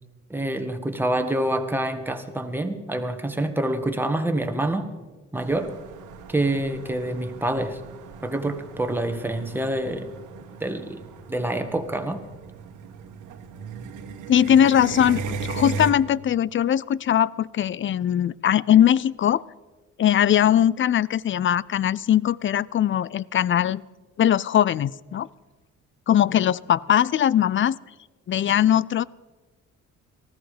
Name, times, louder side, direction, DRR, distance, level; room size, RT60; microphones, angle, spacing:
voice 1, 0.3-4.9 5.3-5.7 6.3-7.8 8.2-10.1 10.6-11.0 11.3-12.2, right 1 dB, 5° right, 6 dB, 1.7 m, -26 dB
sound 1, 5.4-15.9, right 5 dB, 90° right, 1.5 m, -37 dB
voice 2, 14.3-19.4 20.0-23.8 24.2-25.3 26.1-27.8 28.3-29.0, left 10 dB, 40° left, 22 dB, 0.4 m, -20 dB
19.0 x 14.0 x 5.1 m, 1.3 s
cardioid pair, 90°, 30 cm